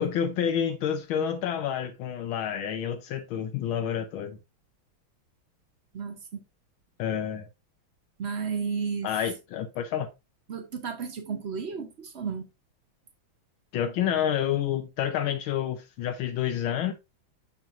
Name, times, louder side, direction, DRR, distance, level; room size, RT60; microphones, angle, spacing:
voice 1, 0.0-4.4 7.0-7.5 9.0-10.1 13.7-16.9, left 9 dB, 85° left, 1.5 m, -29 dB
voice 2, 5.9-6.4 8.2-9.1 10.5-12.5, right 6 dB, 60° right, 0.7 m, -33 dB
7.2 x 6.2 x 2.5 m
omnidirectional pair, 2.2 m